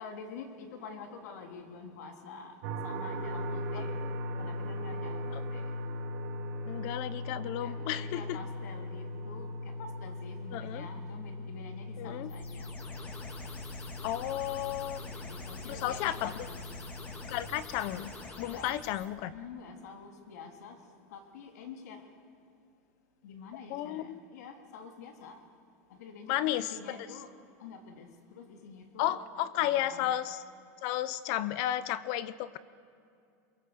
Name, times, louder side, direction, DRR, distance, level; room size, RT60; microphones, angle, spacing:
voice 1, 0.0-4.0 4.4-5.7 7.6-12.9 15.0-17.0 18.4-18.8 19.3-22.1 23.2-25.4 25.9-29.3 29.5-30.1, left 5 dB, 80° left, 3.0 m, -47 dB
sound 1, 2.6-17.4, left 1 dB, 55° right, 2.6 m, -39 dB
voice 2, 6.7-8.4 10.5-10.9 12.0-12.3 14.0-15.0 15.7-16.5 17.3-19.3 23.7-24.2 26.3-27.1 29.0-30.4 30.8-32.6, left 13 dB, 45° left, 0.7 m, -33 dB
sound 2, 12.3-19.1, left 3 dB, 20° left, 2.1 m, -46 dB
23.0 x 22.5 x 7.9 m
supercardioid pair, 170°, 9 cm